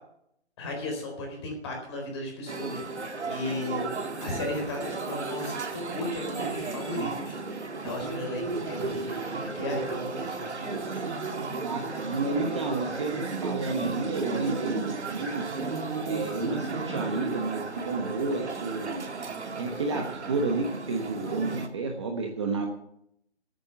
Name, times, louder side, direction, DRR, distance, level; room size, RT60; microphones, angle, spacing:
voice 1, 0.6-11.1, left 1 dB, 25° left, 1 dB, 4.1 m, -36 dB
sound 1, 2.5-21.7, right 3 dB, 80° right, 2.1 m, -34 dB
voice 2, 11.6-15.5 16.0-19.0 19.6-22.7, right 3 dB, 25° right, 2 dB, 1.2 m, -31 dB
13.0 x 9.2 x 6.9 m, 0.73 s
hypercardioid pair, 165°, 34 cm